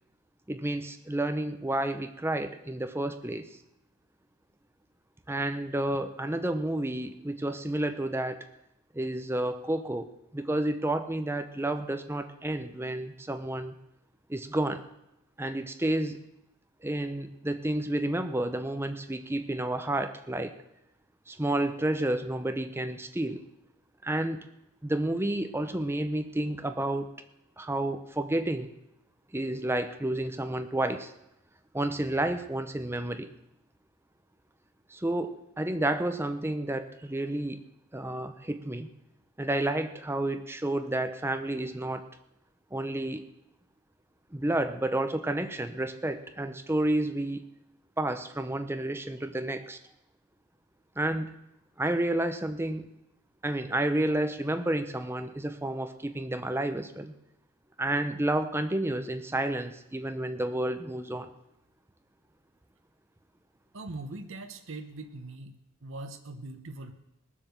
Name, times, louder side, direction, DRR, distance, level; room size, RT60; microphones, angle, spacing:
voice 1, 0.5-3.5 5.3-8.4 8.9-13.7 14.3-14.8 15.4-16.2 16.8-20.5 21.3-23.4 24.0-24.5 24.8-27.1 27.6-28.7 29.3-31.1 31.7-33.3 34.9-37.6 37.9-38.9 39.4-42.1 42.7-43.2 44.3-47.4 48.0-49.8 51.0-51.3 51.8-52.9 53.4-57.1 57.8-61.3, right 1 dB, 10° right, 9 dB, 0.6 m, -30 dB
voice 2, 63.7-65.5 65.8-66.9, right 2 dB, 60° right, 5 dB, 1.0 m, -41 dB
19.0 x 7.4 x 6.6 m, 0.88 s
head